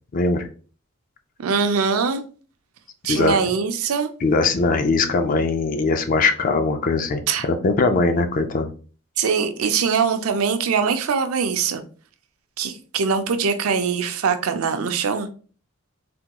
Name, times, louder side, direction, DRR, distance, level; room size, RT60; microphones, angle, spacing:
voice 1, 0.1-0.5 3.0-3.4 4.2-8.7, left 3 dB, 40° left, 0.4 m, -21 dB
voice 2, 1.4-2.2 3.0-4.1 7.3-7.5 9.2-11.8 12.6-15.3, right 5 dB, 85° right, 0.5 m, -22 dB
3.4 x 2.2 x 2.8 m
head